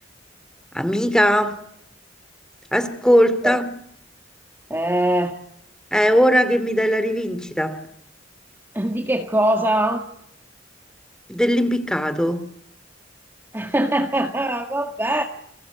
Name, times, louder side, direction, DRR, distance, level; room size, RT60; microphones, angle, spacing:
voice 1, 0.7-1.6 2.7-3.7 5.9-7.8 11.3-12.5, equal, 5° left, 2.5 m, -19 dB
voice 2, 4.7-5.4 8.7-10.1 13.5-15.2, right 1 dB, 10° right, 1.8 m, -22 dB
30.0 x 22.0 x 8.2 m
head